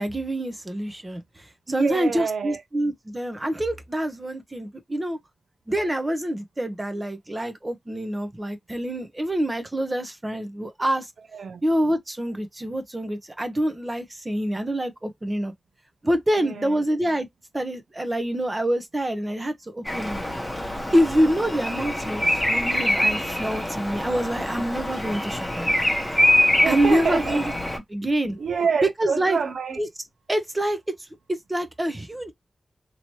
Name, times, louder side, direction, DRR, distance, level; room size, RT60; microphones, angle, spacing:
voice 1, 0.0-5.2 5.7-11.1 11.6-15.5 16.0-17.3 17.5-20.2 20.9-25.7 26.7-27.4 27.9-28.4 29.0-29.4 29.8-29.9 30.3-30.8 31.3-32.3, right 1 dB, 20° right, 0.9 m, -26 dB
voice 2, 1.8-2.6 11.3-11.6 16.4-16.8 26.6-27.5 28.4-29.8, right 6 dB, 90° right, 0.9 m, -27 dB
Bird vocalization bird call bird song, 19.8-27.8, left 1 dB, 10° left, 1.2 m, -24 dB
3.0 x 2.9 x 3.0 m
wide cardioid pair, 85°, 0 cm